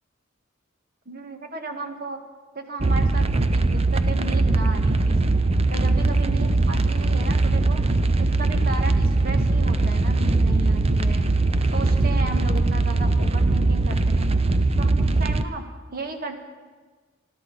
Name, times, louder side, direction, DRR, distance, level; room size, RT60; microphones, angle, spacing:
voice 1, 1.0-2.2 2.5-3.3 3.5-5.2 5.7-7.8 8.2-11.3 11.7-14.5 14.8-15.6 15.9-16.4, right 2 dB, 50° right, 4 dB, 1.6 m, -34 dB
sound 1, 2.8-15.4, right 2 dB, 30° right, 0.6 m, -21 dB
27.0 x 13.0 x 4.1 m, 1.4 s
head